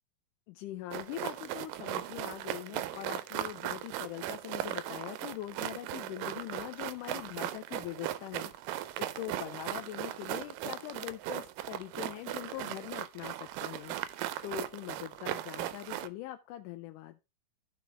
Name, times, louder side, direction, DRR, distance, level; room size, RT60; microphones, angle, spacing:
voice 1, 0.5-17.2, left 15 dB, 80° left, 6 dB, 2.1 m, -42 dB
sound 1, 0.9-16.1, right 13 dB, 85° right, 2.3 m, -38 dB
13.5 x 5.1 x 3.4 m, 0.26 s
omnidirectional pair, 3.8 m